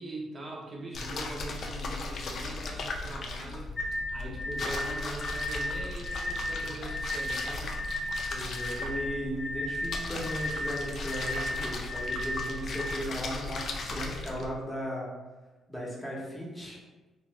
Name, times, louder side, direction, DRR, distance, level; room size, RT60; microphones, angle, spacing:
voice 1, 0.0-7.8, right 2 dB, 35° right, -2 dB, 0.7 m, -41 dB
sound 1, 0.9-14.5, left 2 dB, 55° left, 0.4 m, -37 dB
sound 2, 3.8-12.9, left 1 dB, 30° left, 0.7 m, -35 dB
voice 2, 8.3-15.1 15.7-16.8, equal, 5° left, -5 dB, 1.0 m, -36 dB
2.5 x 2.5 x 3.1 m, 1.2 s
cardioid pair, 90°, 0 cm